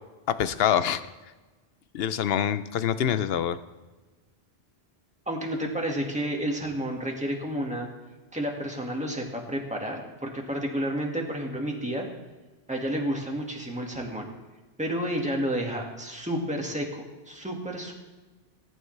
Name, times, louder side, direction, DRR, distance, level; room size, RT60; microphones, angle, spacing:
voice 1, 0.3-1.0 1.9-3.6, left 9 dB, 70° left, 13 dB, 0.8 m, -25 dB
voice 2, 5.3-7.9 8.3-12.1 12.7-14.3 14.8-17.9, equal, 5° right, 0 dB, 1.8 m, -30 dB
19.0 x 9.6 x 3.3 m, 1.2 s
omnidirectional pair, 1.1 m